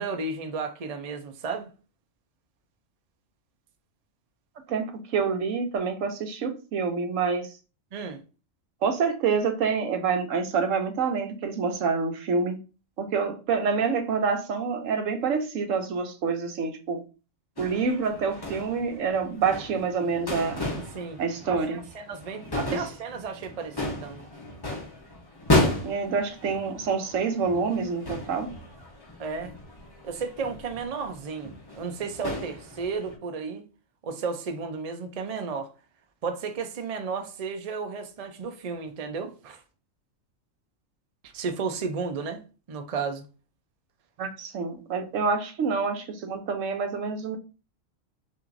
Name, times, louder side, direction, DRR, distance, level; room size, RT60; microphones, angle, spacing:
voice 1, 0.0-1.7 7.9-8.2 20.6-21.2 21.7-24.3 29.2-29.6 30.0-33.6 34.0-35.7 36.2-39.6 41.2-42.4 42.7-43.2, right 5 dB, 50° right, 0.4 m, -33 dB
voice 2, 4.7-7.5 8.8-12.6 13.0-17.0 17.6-20.6 21.2-21.8 22.7-22.8 25.6-28.5 44.2-47.4, right 5 dB, 70° right, 1.0 m, -27 dB
sound 1, 17.6-33.1, left 1 dB, 20° left, 0.8 m, -33 dB
5.8 x 2.7 x 2.5 m
omnidirectional pair, 1.4 m